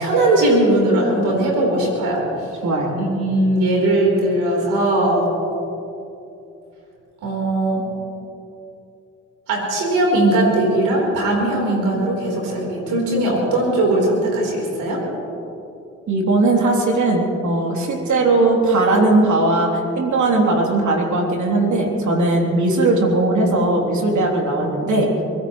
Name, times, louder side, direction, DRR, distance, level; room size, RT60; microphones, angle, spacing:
voice 1, 0.0-2.2 2.9-5.3 7.2-7.9 9.5-15.0, right 1 dB, 90° right, -2 dB, 4.3 m, -19 dB
voice 2, 2.6-3.0 16.1-25.2, right 2 dB, 70° right, -1 dB, 3.4 m, -18 dB
24.0 x 17.5 x 3.2 m, 2.8 s
supercardioid pair, 50°, 31 cm